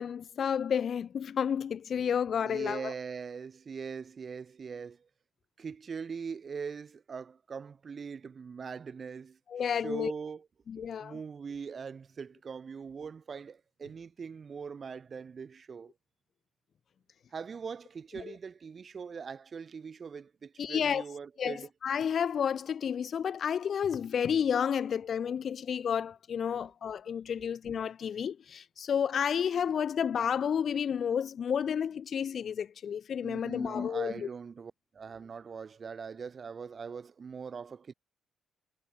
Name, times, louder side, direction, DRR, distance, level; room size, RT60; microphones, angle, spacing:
voice 1, 0.0-2.9 9.5-10.1 10.7-11.2 18.2-18.3 20.6-21.0 21.4-34.3, left 8 dB, 55° left, 0.3 m, -31 dB
voice 2, 2.4-5.1 5.6-9.4 9.7-10.5 11.0-15.9 17.3-21.7 26.6-26.7 33.2-37.9, right 6 dB, 40° right, 2.3 m, -41 dB
cardioid pair, 90°, 0 cm